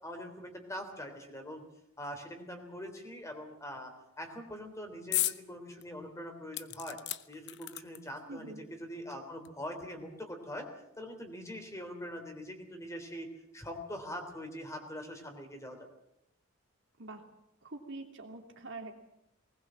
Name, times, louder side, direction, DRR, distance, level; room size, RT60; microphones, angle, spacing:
voice 1, 0.0-1.6 2.0-3.9 4.2-7.0 7.3-10.7 11.0-13.3 13.5-15.8, equal, 15° left, 5 dB, 3.4 m, -43 dB
sound 1, 5.1-5.4 5.8-5.9 6.5-8.2 9.1-9.2 9.5-9.6, left 14 dB, 55° left, 0.8 m, -35 dB
voice 2, 8.3-8.6 17.0-17.2 17.6-19.0, right 2 dB, 60° right, 2 dB, 2.9 m, -45 dB
20.0 x 20.0 x 7.6 m, 0.83 s
head